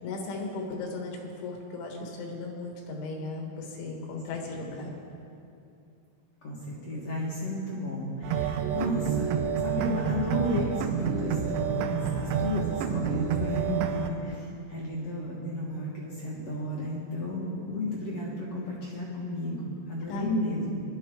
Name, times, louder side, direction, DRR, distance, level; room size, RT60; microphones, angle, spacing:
voice 1, 0.0-4.9 20.1-20.4, left 3 dB, 80° left, 1 dB, 4.0 m, -36 dB
voice 2, 6.4-20.8, left 1 dB, 65° left, -5 dB, 1.6 m, -33 dB
sound 1, 8.2-14.1, right 8 dB, 80° right, 2.8 m, -29 dB
20.0 x 11.5 x 3.8 m, 2.7 s
omnidirectional pair, 5.4 m